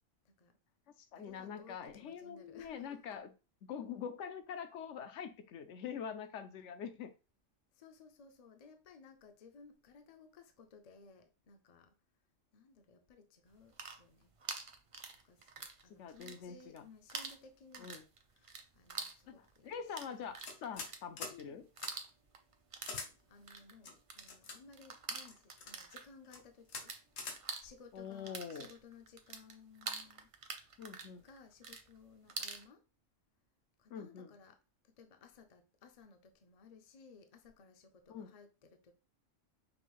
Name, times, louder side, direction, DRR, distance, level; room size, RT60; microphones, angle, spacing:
voice 1, 0.2-0.6 1.1-3.2 7.7-11.9 12.5-14.3 15.2-18.0 18.3-20.4 21.3-21.6 23.3-27.0 27.6-30.3 31.2-32.8 33.8-34.6 34.8-38.9, left 5 dB, 45° left, 0.5 m, -59 dB
voice 2, 1.1-3.3 3.7-7.1 16.0-16.8 17.8-18.0 19.3-21.6 27.9-28.7 30.8-31.2 33.9-34.3 38.1-38.3, left 7 dB, 75° left, 0.9 m, -44 dB
sound 1, 13.5-15.8 16.1-16.8 17.1-27.0 27.3-32.6, right 4 dB, 60° right, 0.3 m, -46 dB
sound 2, 20.4-20.9 21.2-21.4 21.8-21.9 22.8-23.1 23.8-24.6 25.3-25.7 26.2-26.4 26.7-26.8 27.2-27.4, left 4 dB, 90° left, 1.3 m, -44 dB
5.4 x 2.5 x 3.0 m
omnidirectional pair, 1.3 m